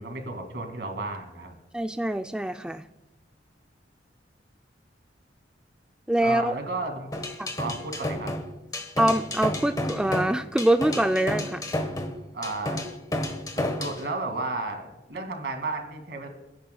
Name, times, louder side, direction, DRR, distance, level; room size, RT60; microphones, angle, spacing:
voice 1, 0.0-1.6 6.2-7.1 7.6-8.3 12.3-12.8 13.6-16.3, right 2 dB, 70° right, 4 dB, 2.3 m, -33 dB
voice 2, 1.7-2.8 6.1-6.5 7.4-7.5 9.0-11.6, right 1 dB, 5° right, 7 dB, 0.3 m, -24 dB
sound 1, 7.1-14.0, left 1 dB, 20° left, 1.2 m, -31 dB
28.0 x 10.0 x 2.3 m, 1.0 s
head